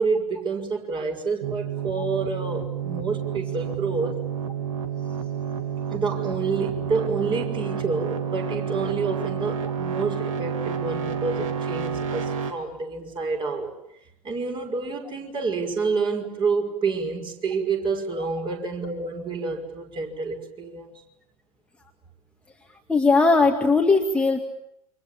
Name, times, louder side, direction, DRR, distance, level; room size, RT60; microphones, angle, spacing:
voice 1, 0.0-4.1 5.9-13.7 14.2-21.0, right 4 dB, 25° right, 3 dB, 5.7 m, -28 dB
sound 1, 1.4-12.5, right 7 dB, 55° right, 3.5 m, -30 dB
voice 2, 22.9-24.4, left 3 dB, 5° left, 2 dB, 2.2 m, -19 dB
29.5 x 26.5 x 7.3 m, 0.78 s
figure-of-eight pair, 90°, 20 cm